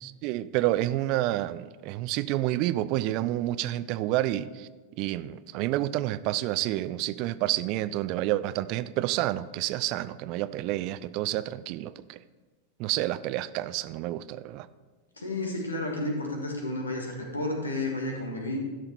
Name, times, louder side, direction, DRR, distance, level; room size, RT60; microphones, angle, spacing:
voice 1, 0.0-4.7 5.0-12.2 12.8-14.7, right 15 dB, 40° right, 16 dB, 0.4 m, -29 dB
voice 2, 15.2-18.6, left 2 dB, 75° left, 1 dB, 1.8 m, -31 dB
12.5 x 6.4 x 4.3 m, 1.3 s
figure-of-eight pair, 90°, 0 cm